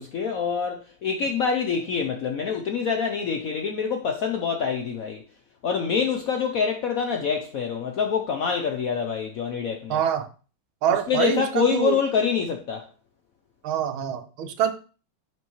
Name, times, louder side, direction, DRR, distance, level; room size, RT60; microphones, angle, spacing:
voice 1, 0.0-5.2 5.6-10.0 11.1-12.9, left 6 dB, 75° left, 0.8 m, -26 dB
voice 2, 9.9-10.3 10.8-12.0 13.6-14.7, right 9 dB, 90° right, 1.6 m, -25 dB
6.2 x 5.4 x 3.0 m
omnidirectional pair, 2.2 m